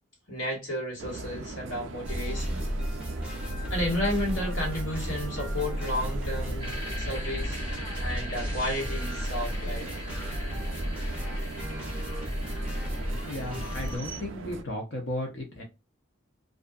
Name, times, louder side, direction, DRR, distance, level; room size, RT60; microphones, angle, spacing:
voice 1, 0.3-2.7 3.7-7.6 8.0-9.9, left 1 dB, 85° left, 1.5 m, -32 dB
sound 1, 1.0-14.6, right 3 dB, 70° right, 0.4 m, -40 dB
sound 2, 2.0-14.0, equal, 5° right, 0.6 m, -33 dB
sound 3, 6.6-14.2, left 1 dB, 20° left, 1.1 m, -43 dB
voice 2, 13.0-15.6, left 1 dB, 60° left, 0.6 m, -35 dB
2.5 x 2.4 x 2.2 m
head